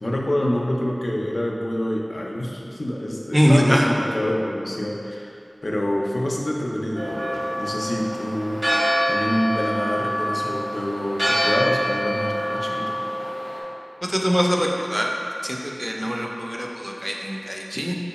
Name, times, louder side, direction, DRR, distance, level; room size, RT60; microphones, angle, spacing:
voice 1, 0.0-5.4 5.6-13.0, left 1 dB, 65° left, -1 dB, 0.5 m, -27 dB
voice 2, 3.3-3.9 14.0-15.1 15.4-17.9, equal, 5° right, -1 dB, 0.5 m, -22 dB
Church bell, 6.9-13.6, equal, 65° right, 1.2 m, -25 dB
4.7 x 2.2 x 4.0 m, 2.6 s
wide cardioid pair, 45°, 0 cm